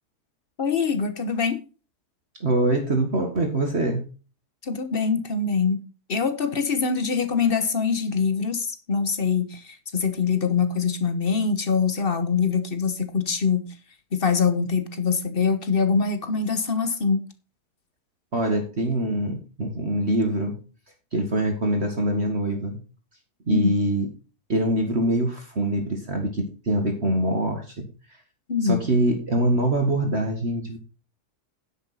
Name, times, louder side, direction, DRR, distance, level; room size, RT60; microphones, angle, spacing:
voice 1, 0.6-1.6 4.6-5.8 6.1-13.7 14.1-17.2 23.5-23.7 28.5-28.8, left 5 dB, 40° left, 9 dB, 1.2 m, -24 dB
voice 2, 2.4-4.0 18.3-20.5 21.1-22.8 23.5-24.1 24.5-27.9 28.6-30.8, right 1 dB, 45° right, 3 dB, 1.9 m, -24 dB
10.5 x 8.1 x 4.1 m, 0.35 s
omnidirectional pair, 1.7 m